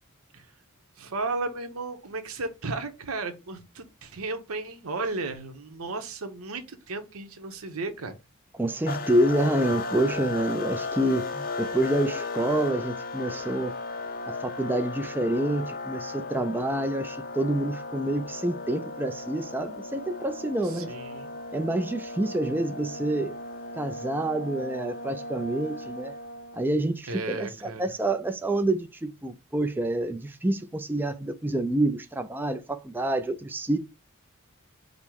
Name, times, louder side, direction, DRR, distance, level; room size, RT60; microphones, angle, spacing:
voice 1, 1.0-8.2 20.6-21.3 27.1-27.8, right 3 dB, 85° right, 0.9 m, -34 dB
voice 2, 8.6-13.7 14.4-20.9 21.5-23.4 23.7-26.1 26.5-33.8, right 1 dB, 10° right, 0.3 m, -27 dB
sound 1, 8.9-26.7, left 3 dB, 45° left, 0.5 m, -36 dB
5.3 x 2.1 x 4.5 m
head